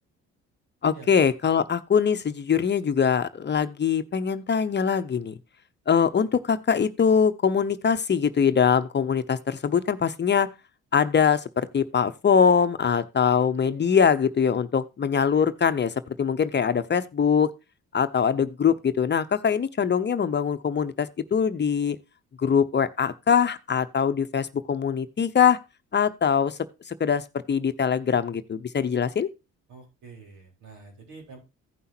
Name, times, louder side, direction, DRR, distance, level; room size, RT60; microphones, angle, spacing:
voice 1, 0.8-5.4 5.9-10.5 10.9-17.5 17.9-22.0 22.4-25.6 25.9-26.6 26.9-29.3, left 7 dB, 35° left, 0.8 m, -23 dB
voice 2, 29.7-31.4, right 4 dB, 80° right, 4.2 m, -46 dB
16.0 x 5.6 x 2.8 m
cardioid pair, 90°, 30 cm